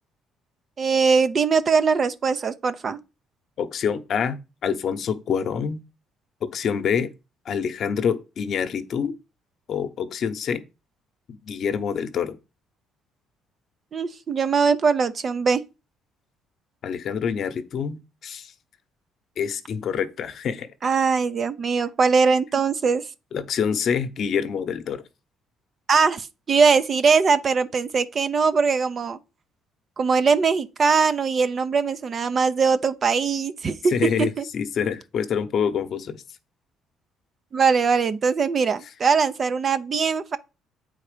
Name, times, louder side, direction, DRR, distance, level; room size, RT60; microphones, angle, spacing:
voice 1, 0.8-3.0 13.9-15.6 20.8-23.0 25.9-29.2 30.0-33.9 34.2-34.5 37.5-40.4, right 5 dB, 40° right, 0.7 m, -21 dB
voice 2, 3.6-5.8 6.4-7.1 7.4-9.1 9.7-10.6 11.4-12.4 16.8-18.5 19.4-20.9 23.3-25.0 33.9-36.2, left 7 dB, 55° left, 0.9 m, -26 dB
8.6 x 4.0 x 5.1 m
cardioid pair, 100°, 0 cm